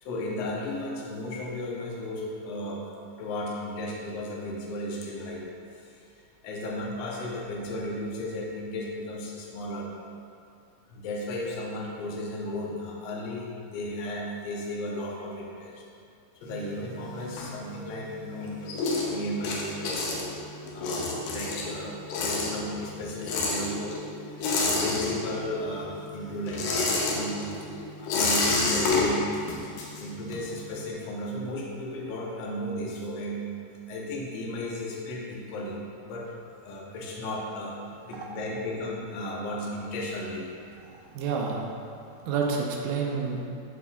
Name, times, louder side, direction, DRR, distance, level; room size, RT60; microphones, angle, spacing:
voice 1, 0.0-2.8 3.2-5.4 5.7-6.0 6.4-9.9 10.9-15.8 16.3-18.6 19.1-20.0 20.7-24.0 24.5-27.5 27.9-29.3 30.0-33.5 33.9-35.8 36.0-36.3 36.5-37.8 38.1-40.5, left 1 dB, 70° left, -3 dB, 1.6 m, -34 dB
sound 1, 16.4-18.0 18.4-25.6 25.9-30.6, left 3 dB, 85° left, 2.4 m, -29 dB
voice 2, 40.9-41.6 42.3-43.4, right 5 dB, 80° right, -1 dB, 2.3 m, -29 dB
11.5 x 4.1 x 2.3 m, 2.4 s
omnidirectional pair, 4.0 m